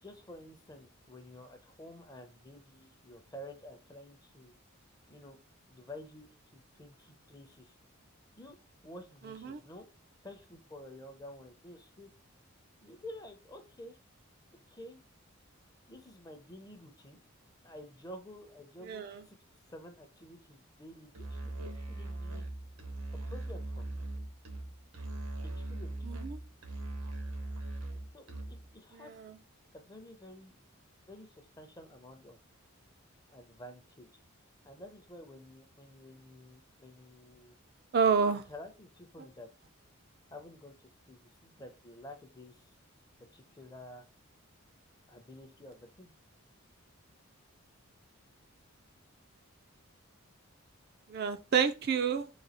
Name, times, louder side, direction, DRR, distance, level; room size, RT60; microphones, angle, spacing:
voice 1, 0.0-4.6 5.1-5.4 5.7-7.7 8.3-8.6 8.8-9.9 10.2-12.1 12.8-14.0 14.7-15.0 15.9-17.2 17.6-19.4 19.7-22.5 23.3-24.0 25.4-25.9 27.9-29.1 29.7-30.6 31.1-32.4 33.3-34.2 34.6-37.6 38.3-39.5 40.3-42.8 43.3-44.1 45.1-46.1, left 1 dB, 15° left, 0.5 m, -50 dB
voice 2, 9.2-9.6 18.8-19.2 26.0-26.4 28.9-29.4 37.9-38.4 51.1-52.3, right 6 dB, 45° right, 0.3 m, -29 dB
Musical instrument, 21.1-28.7, right 1 dB, 85° right, 0.9 m, -40 dB
3.9 x 2.3 x 4.1 m
head